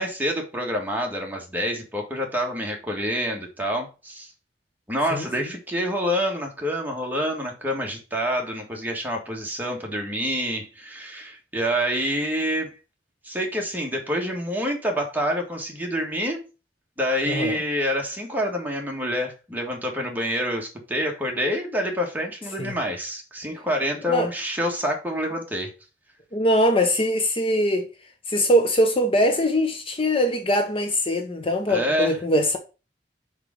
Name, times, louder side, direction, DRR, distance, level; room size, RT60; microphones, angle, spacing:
voice 1, 0.0-4.3 4.9-12.8 13.2-16.4 17.0-25.7 31.7-32.2, equal, 10° right, 1.7 m, -27 dB
voice 2, 5.1-5.5 17.3-17.6 22.6-22.7 24.1-24.3 26.3-27.9 28.3-32.6, equal, 30° left, 0.8 m, -22 dB
5.0 x 4.9 x 6.3 m
head